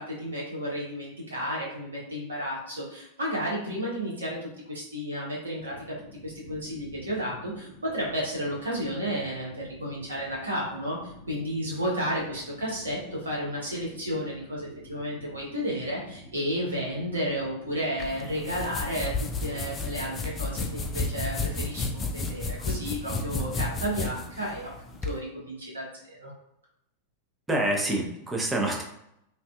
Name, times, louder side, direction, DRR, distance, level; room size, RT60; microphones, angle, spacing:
voice 1, 0.0-5.7 6.2-26.3, equal, 70° right, -4 dB, 1.0 m, -32 dB
sound 1, 5.6-20.2, left 1 dB, 70° left, 0.6 m, -49 dB
sound 2, 18.0-25.2, left 3 dB, 20° left, 0.3 m, -32 dB
voice 2, 27.5-28.8, right 1 dB, 10° right, -1 dB, 0.6 m, -26 dB
2.5 x 2.4 x 2.3 m, 0.78 s
figure-of-eight pair, 90°, 0 cm